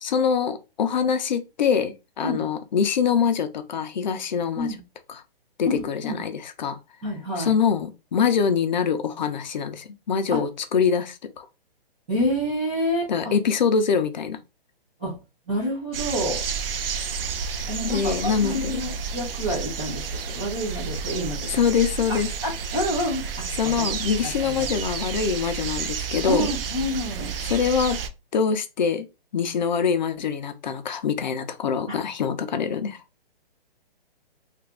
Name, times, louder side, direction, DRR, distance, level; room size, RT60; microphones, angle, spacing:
voice 1, 0.0-4.7 5.6-6.8 7.4-11.5 13.1-14.4 17.8-18.8 21.5-22.3 23.6-26.5 27.5-28.0 28.3-29.1 29.3-33.0, left 6 dB, 50° left, 0.5 m, -24 dB
voice 2, 5.7-6.2 7.0-7.5 10.3-10.4 12.1-13.3 15.0-15.1 15.5-16.4 17.7-21.5 22.1-23.3 23.6-23.9 24.2-24.7 26.3-27.3 31.9-32.0, equal, 10° right, 0.4 m, -28 dB
sound 1, 15.9-28.1, right 6 dB, 70° right, 0.6 m, -31 dB
2.8 x 2.5 x 3.3 m
hypercardioid pair, 160°, 30 cm